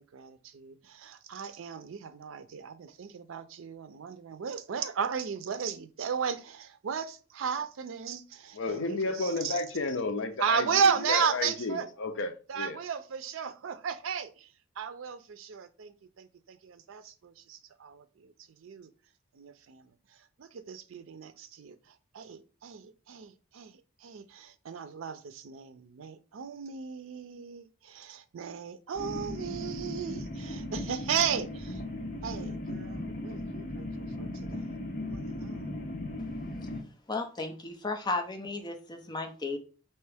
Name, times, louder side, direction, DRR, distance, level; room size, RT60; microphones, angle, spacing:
voice 1, 0.0-9.6 10.4-11.9 12.5-14.5 14.8-18.3 18.6-18.9 19.3-19.9 20.4-21.8 22.1-31.8 32.2-33.9 34.2-35.7, right 6 dB, 90° right, 0.4 m, -35 dB
voice 2, 8.5-12.8, left 3 dB, 70° left, 0.6 m, -32 dB
sound 1, 28.9-36.8, left 1 dB, 40° left, 1.0 m, -37 dB
voice 3, 37.1-39.6, left 3 dB, 20° left, 0.6 m, -34 dB
4.4 x 2.9 x 3.4 m
head